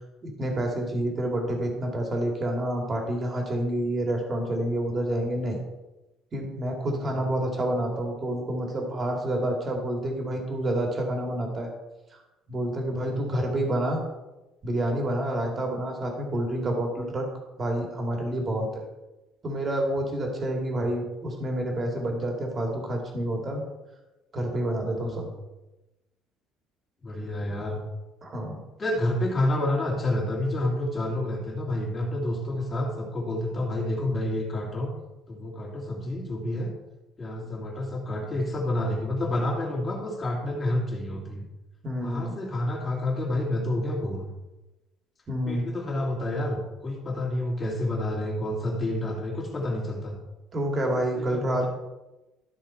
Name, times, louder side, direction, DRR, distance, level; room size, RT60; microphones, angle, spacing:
voice 1, 0.2-5.6 6.3-11.7 12.5-14.0 14.6-17.3 17.6-18.7 19.4-23.6 24.3-25.3 28.2-28.6 41.8-42.4 45.3-45.7 50.5-51.7, right 1 dB, 30° right, 1 dB, 2.3 m, -28 dB
voice 2, 7.0-7.3 13.0-13.3 24.8-25.3 27.0-27.8 28.8-34.9 35.3-36.7 37.2-41.5 41.9-44.2 45.5-50.2 50.8-51.7, left 1 dB, 25° left, -2 dB, 2.6 m, -29 dB
13.0 x 5.6 x 4.4 m, 1.0 s
cardioid pair, 140°, 0 cm